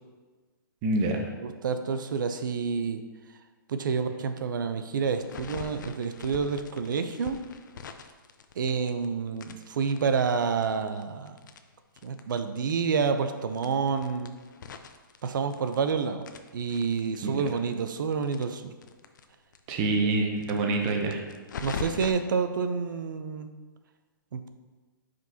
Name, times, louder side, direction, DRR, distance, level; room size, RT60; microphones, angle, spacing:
voice 1, 0.8-1.3 17.2-17.3 19.7-21.2, right 2 dB, 20° right, 3 dB, 0.7 m, -26 dB
voice 2, 1.4-3.0 3.7-7.4 8.6-11.4 12.0-14.3 15.2-16.2 16.5-18.7 20.0-20.3 21.6-23.5 24.3-24.5, right 5 dB, 60° right, 9 dB, 0.6 m, -29 dB
sound 1, 5.2-9.1 9.4-12.4 12.7-12.8 13.0-13.1 13.5-15.9 16.2-19.2 19.5-19.6 19.9-20.0 20.4-22.1, left 5 dB, 60° left, 0.5 m, -41 dB
9.4 x 5.2 x 2.8 m, 1.4 s
hypercardioid pair, 170°, 12 cm